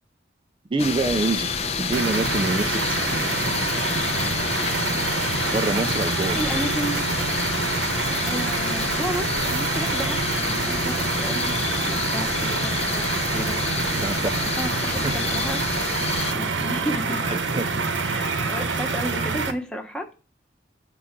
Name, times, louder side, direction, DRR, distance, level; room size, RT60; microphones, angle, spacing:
voice 1, 0.7-3.3 5.5-6.4 14.0-14.5 15.0-15.2 17.2-17.9, right 2 dB, 30° right, 0.4 m, -27 dB
sound 1, 0.8-16.3, left 5 dB, 35° left, 0.6 m, -28 dB
sound 2, 1.9-19.5, right 4 dB, 90° right, 1.0 m, -26 dB
voice 2, 6.4-7.2 8.2-13.6 14.6-15.6 16.3-17.2 17.9-20.1, equal, 5° left, 1.0 m, -32 dB
7.7 x 3.8 x 5.8 m
head